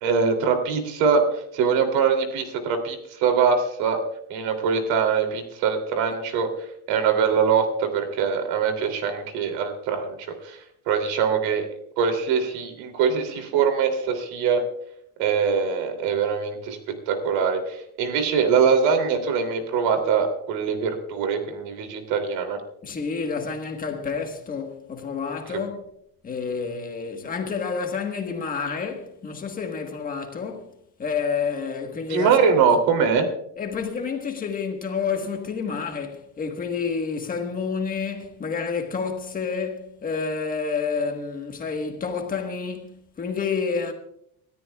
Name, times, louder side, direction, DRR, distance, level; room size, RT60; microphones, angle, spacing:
voice 1, 0.0-4.0 4.3-6.5 6.9-10.6 10.9-11.7 12.0-14.6 15.2-16.8 17.1-22.6 32.1-33.3, right 6 dB, 75° right, 3.0 m, -23 dB
voice 2, 22.8-25.8 26.2-30.7 31.0-32.5 33.6-43.9, left 5 dB, 20° left, 1.4 m, -29 dB
28.5 x 13.5 x 2.4 m
cardioid pair, 180°, 38 cm